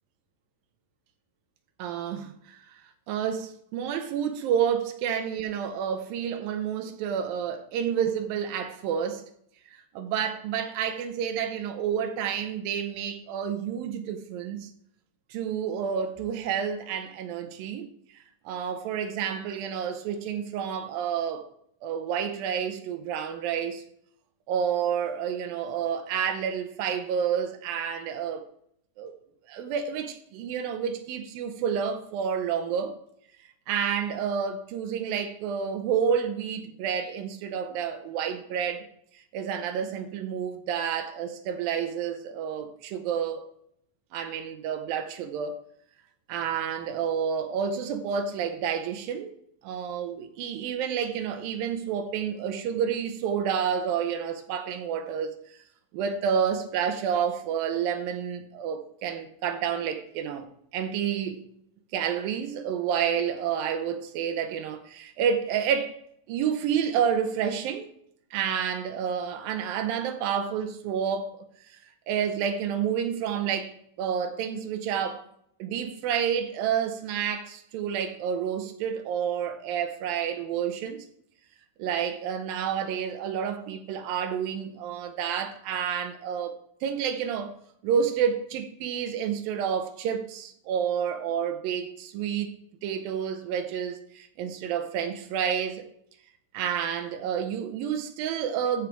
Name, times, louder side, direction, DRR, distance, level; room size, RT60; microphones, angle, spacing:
voice 1, 1.8-2.6 3.1-9.2 9.7-14.7 15.3-17.9 18.5-21.5 21.8-23.8 24.5-28.4 29.0-29.1 29.5-33.0 33.7-38.8 39.3-43.5 44.1-45.6 46.3-49.3 49.6-55.4 55.9-60.5 60.7-61.4 61.9-66.0 66.3-67.9 68.3-71.4 72.1-75.3 75.6-81.0 81.8-86.5 86.8-87.5 87.8-92.5 92.8-95.8 96.5-98.9, right 8 dB, 85° right, 2.6 m, -29 dB
14.0 x 5.0 x 4.6 m
omnidirectional pair, 4.0 m